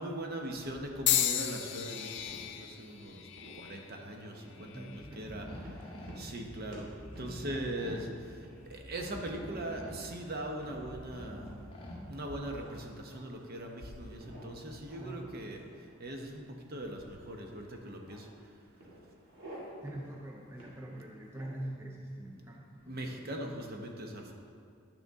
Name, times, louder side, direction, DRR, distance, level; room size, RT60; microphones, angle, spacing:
voice 1, 0.0-2.1 2.6-3.2 3.6-4.3 4.6-5.5 6.2-6.9 7.2-8.1 8.7-11.4 12.1-15.6 16.0-16.4 16.7-18.2 22.9-24.3, right 1 dB, 45° right, 2 dB, 0.9 m, -40 dB
sound 1, 1.1-5.2 5.9-6.3 7.3-7.5, left 11 dB, 55° left, 0.4 m, -34 dB
sound 2, 2.2-2.9 3.3-4.7 5.1-5.4 5.6-6.4 6.7-6.9 7.1-7.3 7.8-7.9 8.4-9.2 9.6-10.3 10.6-10.8 11.4-11.9 12.4-13.5 14.2-15.1 15.4-16.3 17.3-17.4 17.7-18.3 18.8-19.6 19.9-20.1 20.6-21.7, right 1 dB, 70° right, 2.2 m, -53 dB
voice 2, 4.7-5.7 15.0-15.4 19.8-23.3, right 1 dB, 10° right, -2 dB, 0.5 m, -44 dB
sound 3, 4.9-12.6, equal, 25° left, 1.1 m, -47 dB
10.0 x 6.6 x 3.6 m, 2.3 s
head